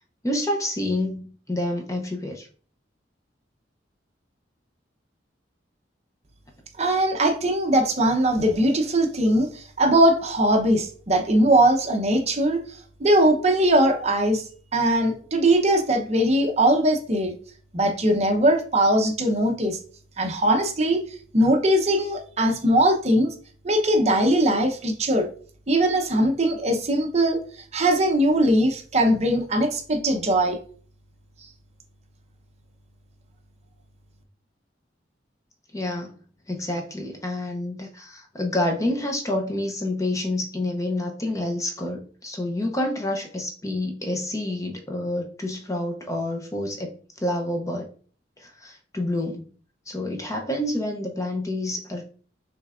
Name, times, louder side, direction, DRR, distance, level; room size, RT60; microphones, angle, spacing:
voice 1, 0.2-2.5 35.7-36.2 36.5-46.9 47.2-47.9 48.4-49.5 49.9-52.0, left 1 dB, 15° left, 2 dB, 0.6 m, -28 dB
voice 2, 6.8-14.4 14.7-17.3 17.7-19.8 20.2-21.0 21.3-23.3 23.6-25.3 25.7-30.6, right 1 dB, 35° right, 3 dB, 0.8 m, -20 dB
6.1 x 3.3 x 2.4 m, 0.43 s
head